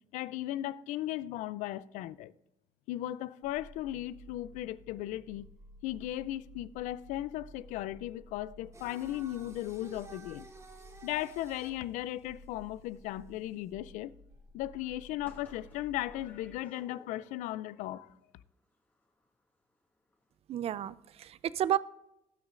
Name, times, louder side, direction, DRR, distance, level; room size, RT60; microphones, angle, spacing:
voice 1, 0.1-2.3 2.9-5.4 5.8-10.4 11.0-14.1 14.5-18.1, left 14 dB, 90° left, 0.4 m, -37 dB
sound 1, 3.4-16.5, right 1 dB, 75° right, 3.1 m, -55 dB
Singing, 8.7-13.7, right 2 dB, 25° right, 2.7 m, -53 dB
sound 2, 15.2-17.6 17.8-19.4 19.7-19.9 20.1-20.3, left 1 dB, 15° left, 2.0 m, -59 dB
voice 2, 20.5-21.8, right 11 dB, 55° right, 0.4 m, -31 dB
19.0 x 6.3 x 2.5 m
cardioid pair, 85°, 13 cm